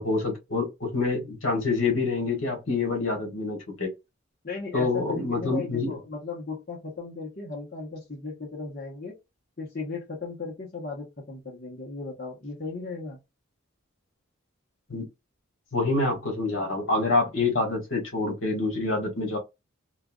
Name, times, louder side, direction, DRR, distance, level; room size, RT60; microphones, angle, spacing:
voice 1, 0.0-3.9 4.7-5.9 14.9-15.0 15.7-19.4, left 3 dB, 75° left, 1.4 m, -26 dB
voice 2, 4.4-9.1 9.6-13.2, left 3 dB, 45° left, 0.9 m, -36 dB
3.3 x 2.4 x 2.2 m
head